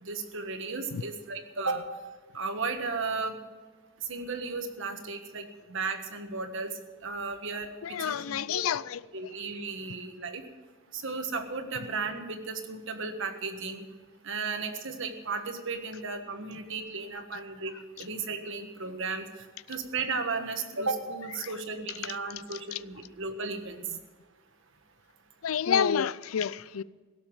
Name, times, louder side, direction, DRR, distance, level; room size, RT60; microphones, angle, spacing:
voice 1, 0.0-1.8 2.3-3.4 4.1-6.7 7.0-7.7 8.0-8.6 9.1-10.4 10.9-13.8 14.2-19.2 19.7-23.8, right 4 dB, 65° right, 1.5 m, -34 dB
voice 2, 7.8-9.0 21.4-21.5 22.0-22.2 22.5-22.8 25.4-26.8, left 7 dB, 75° left, 0.4 m, -29 dB
17.0 x 7.1 x 8.9 m
head